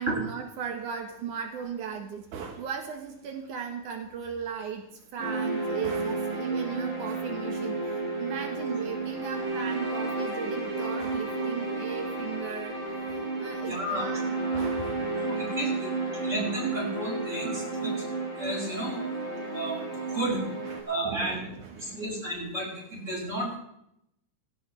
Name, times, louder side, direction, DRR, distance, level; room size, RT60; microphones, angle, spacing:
voice 1, 0.0-4.8 5.1-15.0 15.6-15.8 20.6-22.0, right 7 dB, 80° right, 3 dB, 3.0 m, -37 dB
sound 1, 5.2-20.8, right 3 dB, 50° right, 4.4 m, -32 dB
voice 2, 13.6-14.0 15.3-15.9 16.2-18.1 18.4-19.0 19.5-20.4 20.9-21.4 21.8-23.6, right 1 dB, 20° right, -4 dB, 7.7 m, -32 dB
19.0 x 16.5 x 3.5 m, 0.78 s
omnidirectional pair, 3.4 m